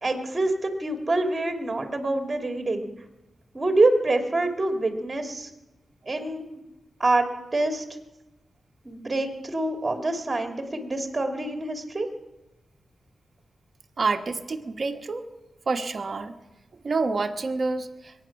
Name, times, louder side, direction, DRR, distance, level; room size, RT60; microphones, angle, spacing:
voice 1, 0.0-2.9 3.5-5.5 6.1-6.5 7.0-7.8 8.8-12.1, right 2 dB, 30° right, 4 dB, 2.6 m, -26 dB
voice 2, 14.0-15.2 15.7-16.3 16.8-17.9, right 3 dB, 45° right, 5 dB, 1.4 m, -27 dB
22.5 x 9.7 x 6.0 m, 0.99 s
wide cardioid pair, 95°, 0 cm